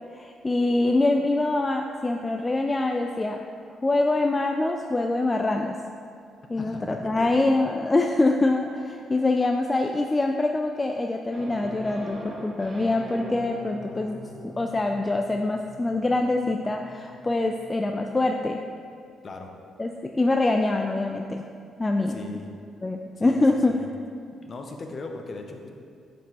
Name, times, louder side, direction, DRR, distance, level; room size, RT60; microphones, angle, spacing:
voice 1, 0.1-3.4 3.8-5.8 6.5-18.6 19.8-19.9 20.2-21.4 21.8-22.2 22.8-23.8, left 2 dB, 20° left, 3 dB, 0.3 m, -24 dB
voice 2, 6.6-7.3 19.2-19.5 22.1-22.5 23.2-23.9 24.4-25.7, left 3 dB, 45° left, 3 dB, 0.7 m, -38 dB
sound 1, 11.3-18.3, right 1 dB, 40° right, 0.9 m, -43 dB
7.3 x 5.2 x 3.0 m, 2.3 s
cardioid pair, 90°, 0 cm